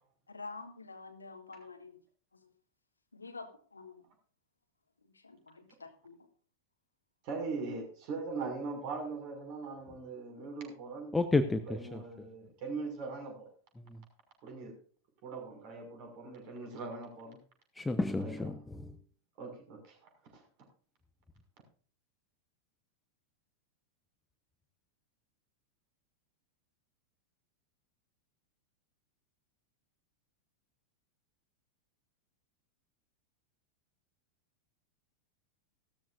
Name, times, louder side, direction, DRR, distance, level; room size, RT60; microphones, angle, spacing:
voice 1, 0.3-2.0 3.1-4.0 5.2-6.2, left 3 dB, 80° left, 1.6 m, -48 dB
voice 2, 7.2-11.1 11.7-13.5 14.4-14.8 15.2-17.4 18.2-18.5 19.4-20.4, right 4 dB, 45° right, 5.9 m, -41 dB
voice 3, 11.1-12.0 13.9-14.0 17.8-19.0, left 3 dB, 10° left, 0.8 m, -31 dB
16.0 x 13.5 x 2.6 m
figure-of-eight pair, 90°, 0 cm